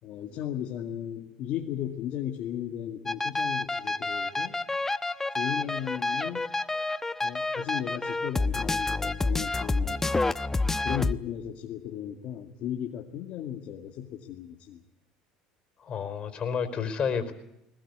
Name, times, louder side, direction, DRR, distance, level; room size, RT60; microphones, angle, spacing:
voice 1, 0.0-4.6 5.3-6.5 7.2-10.0 10.8-14.8, left 10 dB, 60° left, 1 dB, 2.2 m, -36 dB
sound 1, 3.1-11.1, left 3 dB, 15° left, 1.0 m, -29 dB
voice 2, 15.8-17.3, left 6 dB, 40° left, 10 dB, 4.6 m, -30 dB
20.5 x 20.0 x 9.7 m, 0.82 s
hypercardioid pair, 80°, 3 cm